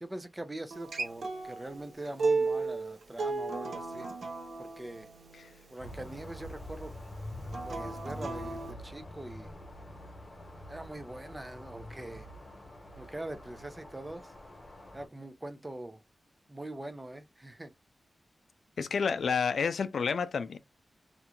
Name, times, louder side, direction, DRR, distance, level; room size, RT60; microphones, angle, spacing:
voice 1, 0.0-4.1 4.6-5.1 5.7-6.9 7.6-9.5 10.7-12.3 13.0-14.3 14.9-16.0 16.5-17.7, right 1 dB, 15° right, 0.4 m, -43 dB
Acoustic guitar, 0.7-5.9 7.5-8.7, right 3 dB, 75° right, 0.7 m, -34 dB
sound 1, 5.8-15.1, left 1 dB, 35° left, 1.2 m, -46 dB
voice 2, 18.8-20.6, left 6 dB, 85° left, 0.3 m, -30 dB
2.9 x 2.5 x 2.2 m
wide cardioid pair, 115°, 0 cm